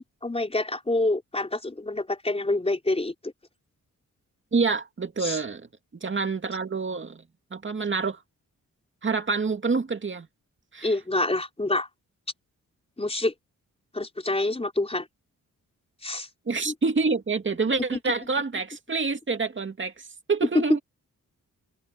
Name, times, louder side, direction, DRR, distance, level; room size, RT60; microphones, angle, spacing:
voice 1, 0.0-3.3 5.2-5.4 10.8-11.9 13.0-13.3 13.9-15.1 16.0-16.3 16.6-16.7 17.9-18.0 20.5-20.6, left 2 dB, 20° left, 4.3 m, -27 dB
voice 2, 4.5-5.7 6.0-7.2 7.5-8.2 9.0-10.3 10.7-10.9 16.5-20.8, right 4 dB, 40° right, 2.4 m, -27 dB
cardioid pair, 95°, 31 cm